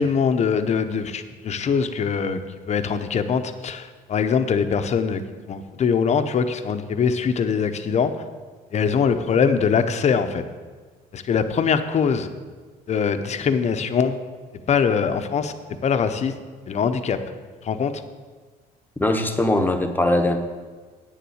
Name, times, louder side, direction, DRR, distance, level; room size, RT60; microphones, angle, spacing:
voice 1, 0.0-2.4 2.7-5.2 5.5-8.1 8.7-10.4 11.1-12.3 12.9-14.2 14.7-15.5 15.8-16.3 16.7-17.2 17.6-18.0, left 6 dB, 40° left, 9 dB, 0.8 m, -22 dB
voice 2, 19.0-20.4, left 1 dB, 10° left, 5 dB, 1.1 m, -20 dB
9.1 x 7.0 x 7.9 m, 1.4 s
cardioid pair, 110°, 17 cm